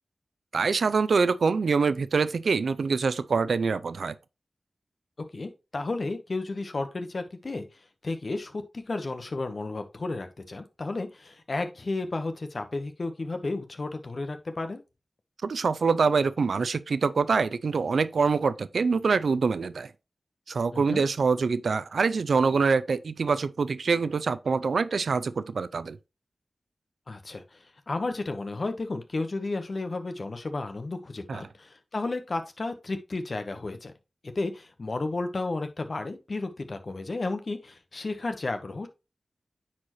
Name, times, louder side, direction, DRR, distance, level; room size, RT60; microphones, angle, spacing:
voice 1, 0.5-4.1 15.4-19.9 20.5-26.0 31.3-31.4, right 4 dB, 85° right, 0.4 m, -25 dB
voice 2, 5.3-7.7 8.0-14.8 20.7-21.0 27.1-33.9 34.2-38.9, left 3 dB, 60° left, 1.0 m, -33 dB
9.5 x 4.4 x 3.0 m
cardioid pair, 50°, 0 cm